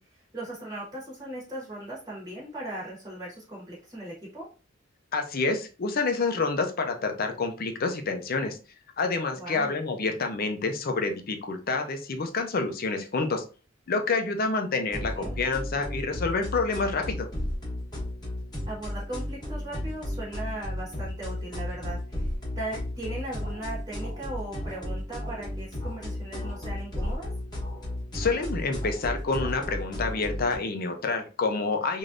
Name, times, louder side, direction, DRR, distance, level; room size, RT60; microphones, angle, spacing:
voice 1, 0.0-4.5 9.4-9.7 15.2-15.4 18.7-22.3 22.5-27.3, right 1 dB, 20° right, -5 dB, 1.2 m, -38 dB
voice 2, 5.1-8.6 9.0-13.4 13.9-17.3 28.1-32.0, left 3 dB, 50° left, 5 dB, 0.5 m, -28 dB
sound 1, 14.9-30.6, left 1 dB, 20° left, 1.2 m, -34 dB
3.3 x 2.6 x 2.4 m, 0.34 s
head